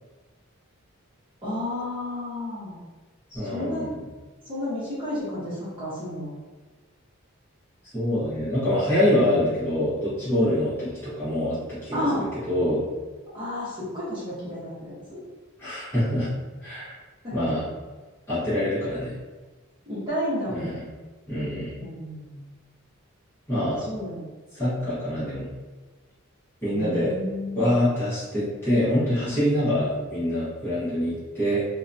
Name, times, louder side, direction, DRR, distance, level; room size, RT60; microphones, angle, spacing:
voice 1, 1.4-2.8 3.3-3.9 4.4-6.3 11.9-12.2 13.3-15.2 17.2-17.5 19.9-21.0 21.8-22.4 23.8-24.2 26.7-27.7, left 1 dB, 20° right, -11 dB, 0.9 m, -32 dB
voice 2, 3.3-4.0 7.9-12.0 12.5-12.9 15.6-16.3 16.6-16.9 17.3-17.6 18.3-19.2 20.5-20.7 21.3-21.8 23.5-23.8 24.5-25.5 26.6-27.1 27.6-31.6, left 1 dB, 10° left, -12 dB, 0.9 m, -25 dB
2.6 x 2.2 x 2.6 m, 1.3 s
head